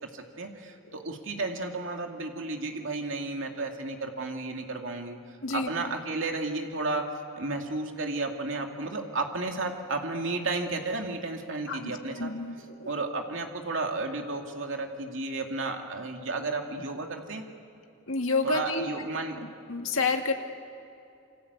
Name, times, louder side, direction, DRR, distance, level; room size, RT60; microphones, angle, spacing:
voice 1, 0.0-12.3 12.8-17.4 18.4-19.4, right 3 dB, 65° right, 3 dB, 2.5 m, -33 dB
voice 2, 12.2-13.0 18.1-18.9 19.7-20.3, left 3 dB, 70° left, 3 dB, 2.3 m, -29 dB
28.5 x 25.0 x 8.2 m, 2.7 s
head